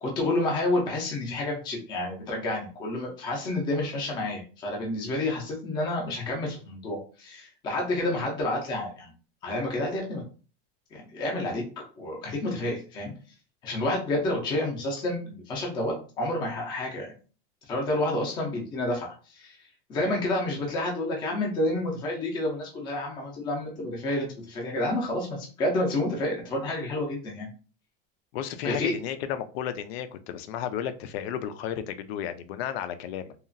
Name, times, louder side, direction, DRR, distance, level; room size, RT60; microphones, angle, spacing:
voice 1, 0.0-9.1 9.4-10.2 10.9-11.6 12.0-13.1 13.6-17.2 17.7-19.6 19.9-27.5 28.6-28.9, left 1 dB, 15° left, -1 dB, 0.4 m, -29 dB
voice 2, 28.3-33.3, left 9 dB, 90° left, 11 dB, 0.5 m, -33 dB
2.9 x 2.4 x 2.5 m, 0.37 s
supercardioid pair, 180°, 30 cm